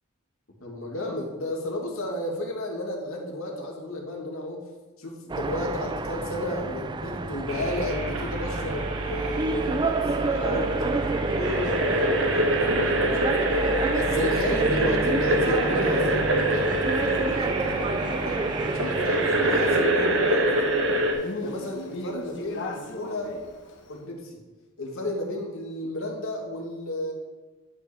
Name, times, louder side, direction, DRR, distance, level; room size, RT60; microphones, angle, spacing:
voice 1, 0.6-4.6 5.0-13.5 13.9-21.1 21.4-23.3 23.9-24.4 24.8-27.1, left 1 dB, 80° left, 0 dB, 2.0 m, -33 dB
sound 1, 5.3-19.8, right 3 dB, 20° right, 0.3 m, -29 dB
sound 2, 7.5-21.1, right 1 dB, 60° right, 1.3 m, -26 dB
Male speech man speaking, 15.4-23.9, left 1 dB, 60° left, 1.2 m, -39 dB
11.0 x 5.3 x 4.3 m, 1.3 s
head